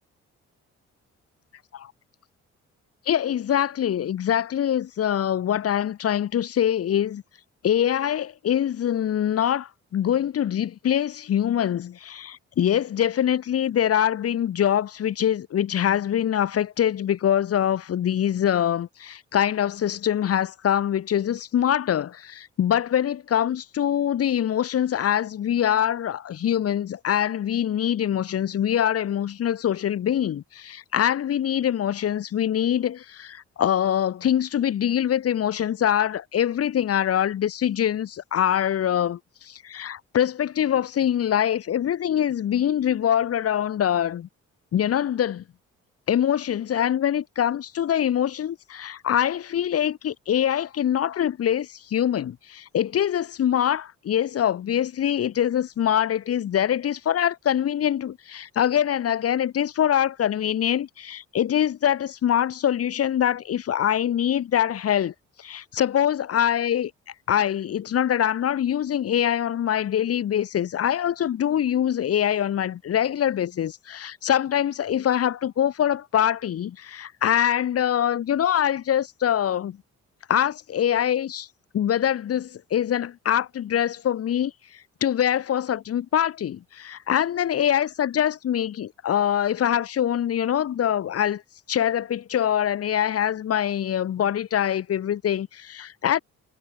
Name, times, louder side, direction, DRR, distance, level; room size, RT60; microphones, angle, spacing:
voice 1, 3.1-7.2 7.6-44.3 44.7-45.4 46.1-65.1 65.4-66.9 67.3-79.8 80.3-81.5 81.7-91.4 91.7-96.2, left 10 dB, 50° left, 1.0 m, -24 dB
cardioid pair, 90°, 30 cm